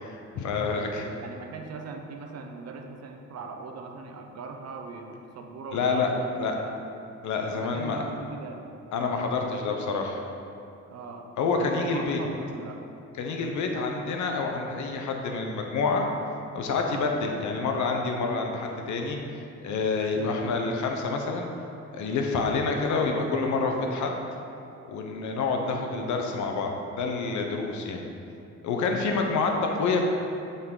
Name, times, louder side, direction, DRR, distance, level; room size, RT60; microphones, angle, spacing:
voice 1, 0.0-1.0 5.7-6.1 6.4-6.6 7.2-8.1 8.9-10.2 11.4-12.2 13.2-16.1 16.5-19.2 19.6-21.5 21.9-24.1 24.9-28.1 28.6-30.0, left 4 dB, 75° left, 2 dB, 0.9 m, -28 dB
voice 2, 0.6-6.9 7.5-8.6 10.9-11.3 11.6-12.8 16.9-17.1 20.1-20.4 22.5-22.8 25.6-25.9 29.0-29.2, right 4 dB, 55° right, 3 dB, 0.8 m, -40 dB
7.7 x 4.1 x 3.8 m, 2.7 s
cardioid pair, 90°, 30 cm